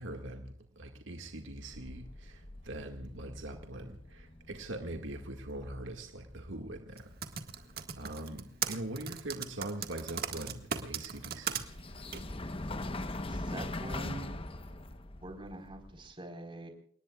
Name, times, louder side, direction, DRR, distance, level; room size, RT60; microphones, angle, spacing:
voice 1, 0.0-7.1 8.0-11.6, right 1 dB, 75° right, 4 dB, 2.0 m, -42 dB
sound 1, 1.7-16.1, left 2 dB, 30° left, 1.0 m, -43 dB
Typing, 7.0-11.6 12.1-12.2, right 7 dB, 50° right, 1.8 m, -36 dB
voice 2, 13.3-14.3 15.2-16.7, right 1 dB, 25° right, 4 dB, 4.3 m, -44 dB
30.0 x 19.0 x 2.4 m, 0.63 s
head